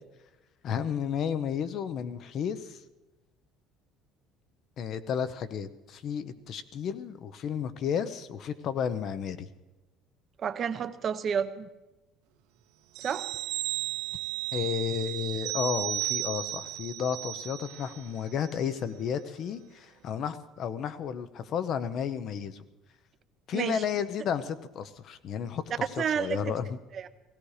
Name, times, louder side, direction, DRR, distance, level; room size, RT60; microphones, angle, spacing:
voice 1, 0.6-2.8 4.8-9.5 14.5-22.6 23.5-25.8 26.1-26.8, left 8 dB, 45° left, 13 dB, 0.8 m, -32 dB
voice 2, 10.4-11.7 13.0-13.3 23.5-23.8 26.0-26.4 26.9-27.1, right 7 dB, 35° right, 11 dB, 0.8 m, -30 dB
sound 1, 12.9-18.1 18.4-18.5, right 18 dB, 85° right, 0.6 m, -34 dB
17.0 x 17.0 x 4.9 m, 1.1 s
cardioid pair, 145°, 0 cm